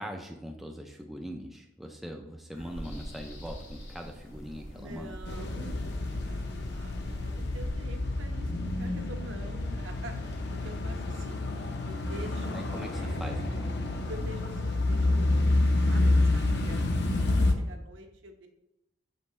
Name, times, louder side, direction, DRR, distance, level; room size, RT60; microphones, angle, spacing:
voice 1, 0.0-5.2 12.5-13.7, equal, ahead, 2 dB, 0.4 m, -41 dB
sound 1, 2.5-7.7, equal, 70° left, 1.9 m, -44 dB
voice 2, 4.7-8.5 8.8-11.5 11.9-12.7 12.9-13.1 14.1-15.3 15.9-18.5, right 1 dB, 70° right, 4 dB, 0.8 m, -46 dB
sound 2, 5.3-17.5, left 2 dB, 55° left, 0.7 m, -28 dB
6.3 x 5.3 x 3.1 m, 0.90 s
head